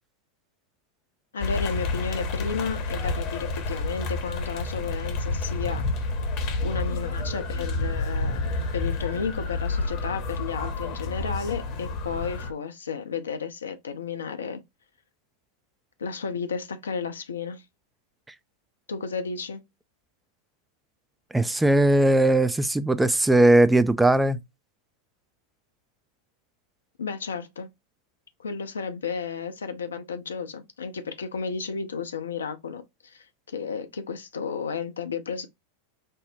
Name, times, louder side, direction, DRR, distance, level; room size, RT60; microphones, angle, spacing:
voice 1, 1.3-5.8 6.6-14.6 16.0-17.6 18.9-19.6 27.0-27.7 28.4-35.5, left 5 dB, 70° left, 0.5 m, -33 dB
sound 1, 1.4-12.5, left 3 dB, 45° left, 0.8 m, -29 dB
voice 2, 21.3-24.4, right 1 dB, 5° right, 0.3 m, -19 dB
5.4 x 2.0 x 2.6 m
figure-of-eight pair, 90°, 0 cm